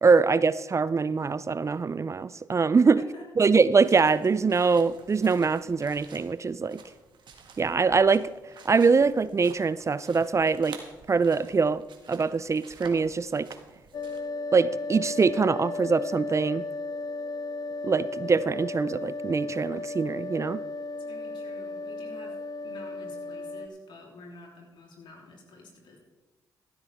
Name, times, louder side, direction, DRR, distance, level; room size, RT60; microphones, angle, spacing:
voice 1, 0.0-3.0 3.4-6.8 7.6-8.3 8.7-10.8 11.1-11.8 12.1-13.5 14.5-16.6 17.8-20.6, right 4 dB, 35° right, 17 dB, 0.4 m, -23 dB
voice 2, 2.8-3.3 21.0-22.4 22.6-26.0, left 2 dB, 70° left, -1 dB, 3.4 m, -48 dB
sound 1, 3.8-14.2, right 5 dB, 65° right, 1.7 m, -50 dB
sound 2, 13.9-23.7, left 3 dB, 45° left, 0.7 m, -35 dB
13.5 x 12.0 x 3.5 m, 1.2 s
supercardioid pair, 50°, 9 cm